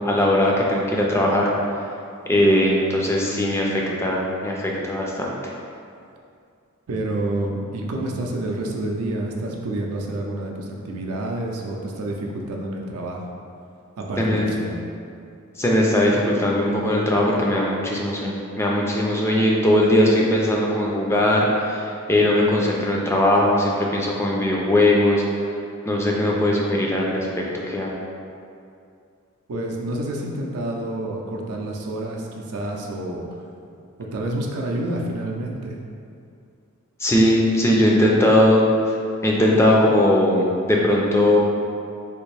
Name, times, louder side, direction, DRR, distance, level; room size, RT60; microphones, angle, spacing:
voice 1, 0.0-1.4 2.3-5.3 14.2-14.4 15.6-25.2 25.9-27.9 37.0-38.6 39.2-41.4, left 1 dB, 10° left, -2 dB, 0.3 m, -19 dB
voice 2, 6.9-13.3 14.0-14.8 29.5-33.2 34.1-35.8, right 1 dB, 85° right, 0 dB, 0.5 m, -28 dB
3.5 x 2.5 x 3.2 m, 2.5 s
head